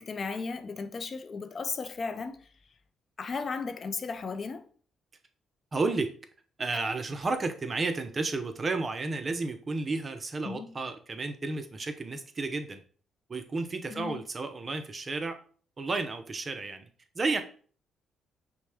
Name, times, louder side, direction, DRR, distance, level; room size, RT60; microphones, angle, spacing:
voice 1, 0.0-2.5 3.2-4.7 10.5-10.7 13.9-14.2, left 4 dB, 45° left, 0.4 m, -35 dB
voice 2, 5.7-6.1 6.6-12.8 13.3-15.4 15.8-16.9 17.1-17.4, right 3 dB, 35° right, 0.6 m, -32 dB
5.8 x 2.2 x 3.4 m
cardioid pair, 90°, 0 cm